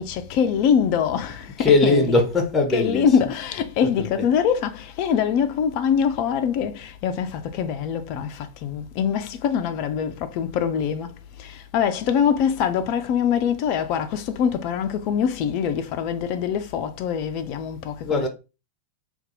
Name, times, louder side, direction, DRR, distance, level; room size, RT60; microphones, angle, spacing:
voice 1, 0.0-2.1 2.7-18.3, left 7 dB, 40° left, 0.3 m, -24 dB
voice 2, 1.4-3.2 3.8-4.3 18.0-18.3, left 3 dB, 15° left, 0.7 m, -21 dB
2.6 x 2.3 x 3.9 m
figure-of-eight pair, 90°, 0 cm